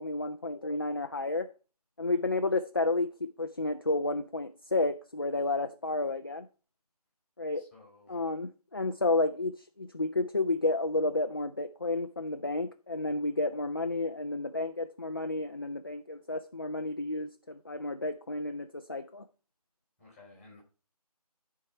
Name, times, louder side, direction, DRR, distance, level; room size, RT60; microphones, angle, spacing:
voice 1, 0.0-1.5 2.0-6.5 7.4-7.6 8.1-19.3, left 2 dB, 35° left, 0.5 m, -31 dB
voice 2, 7.5-8.2 9.1-9.2 20.0-20.6, left 3 dB, ahead, 3.1 m, -56 dB
12.5 x 4.7 x 5.7 m
figure-of-eight pair, 170°, 20 cm